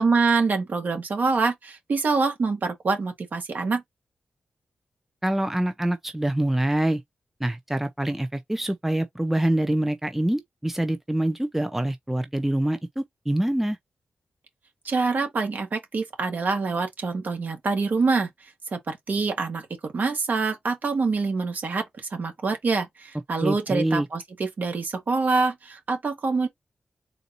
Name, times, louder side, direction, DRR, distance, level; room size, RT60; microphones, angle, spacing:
voice 1, 0.0-3.8 14.8-18.3 18.7-19.7 19.9-26.5, right 4 dB, 60° right, 1.7 m, -25 dB
voice 2, 5.2-7.0 7.4-13.8 23.4-24.1, right 1 dB, 10° right, 0.6 m, -25 dB
3.9 x 2.7 x 4.0 m
cardioid pair, 70°, 3 cm